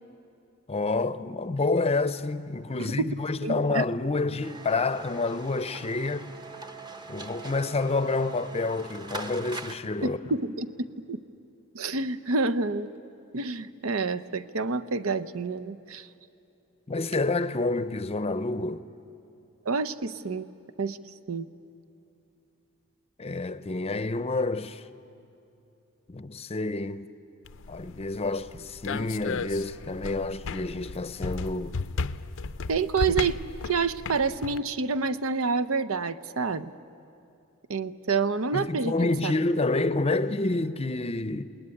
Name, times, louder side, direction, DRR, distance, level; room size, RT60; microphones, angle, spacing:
voice 1, 0.7-6.3 7.1-10.2 16.9-18.9 23.2-24.8 26.1-27.1 27.7-31.8 38.5-41.4, left 3 dB, 30° left, 0.7 m, -28 dB
voice 2, 2.8-3.1 3.4-3.8 10.0-11.2 11.7-12.9 13.3-16.1 19.7-20.5 20.8-21.0 21.3-21.5 32.7-33.4 33.6-36.7 37.7-39.4, right 4 dB, 70° right, 0.8 m, -28 dB
sound 1, 4.4-9.8, right 3 dB, 20° right, 1.0 m, -42 dB
sound 2, 27.4-34.6, left 4 dB, 65° left, 0.6 m, -35 dB
27.5 x 19.5 x 9.9 m
head